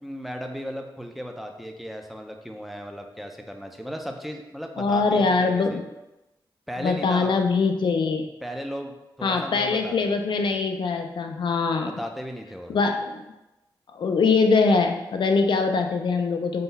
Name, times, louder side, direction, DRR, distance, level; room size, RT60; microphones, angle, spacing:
voice 1, 0.0-5.8 6.7-7.4 8.4-10.1 11.8-12.8, equal, ahead, 3 dB, 0.4 m, -36 dB
voice 2, 4.8-5.8 6.8-8.3 9.2-11.9 12.7-13.2 14.0-16.6, left 4 dB, 75° left, 5 dB, 0.4 m, -23 dB
3.8 x 2.3 x 4.0 m, 0.97 s
wide cardioid pair, 90°, 8 cm